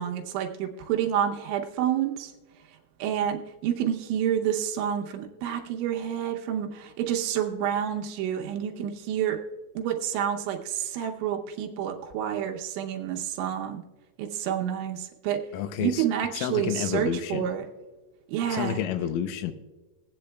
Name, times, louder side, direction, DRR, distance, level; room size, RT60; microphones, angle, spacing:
voice 1, 0.0-2.3 3.0-9.4 9.8-13.8 14.2-15.4 15.8-17.7 18.3-18.8, right 9 dB, 80° right, 2 dB, 3.0 m, -29 dB
voice 2, 15.5-16.1 16.3-17.5 18.5-19.5, left 10 dB, 85° left, 10 dB, 3.3 m, -30 dB
22.0 x 8.7 x 2.2 m, 1.3 s
omnidirectional pair, 5.8 m